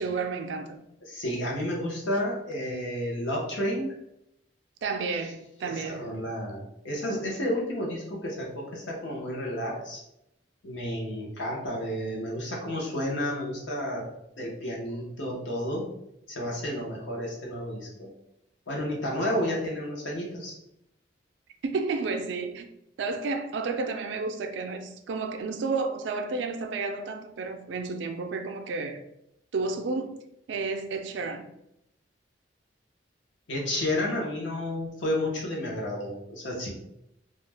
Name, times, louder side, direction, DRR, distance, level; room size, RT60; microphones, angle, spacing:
voice 1, 0.0-0.8 4.8-6.1 21.6-22.7 23.0-29.0 29.5-31.5, right 4 dB, 70° right, 0.3 m, -31 dB
voice 2, 1.0-4.0 5.6-10.0 10.6-14.1 14.4-15.9 16.3-18.1 18.7-20.5 33.5-36.7, left 1 dB, 80° left, 0.8 m, -31 dB
2.4 x 2.1 x 3.2 m
head